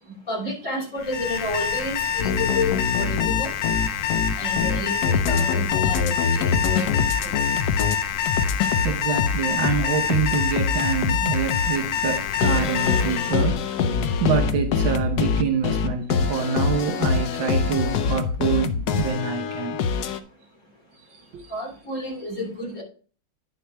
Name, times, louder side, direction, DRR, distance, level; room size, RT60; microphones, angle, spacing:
voice 1, 0.0-3.5 4.3-7.7 21.5-22.8, left 2 dB, 35° left, -1 dB, 3.5 m, -31 dB
Alarm, 1.0-13.5, left 8 dB, 85° left, 1.8 m, -26 dB
sound 1, 2.2-8.0 8.3-11.7 12.4-20.2, left 5 dB, 65° left, 1.1 m, -24 dB
voice 2, 8.8-13.6 14.2-19.8 21.3-21.4, right 6 dB, 70° right, 3 dB, 1.7 m, -26 dB
10.0 x 6.3 x 3.4 m, 0.39 s
omnidirectional pair, 2.2 m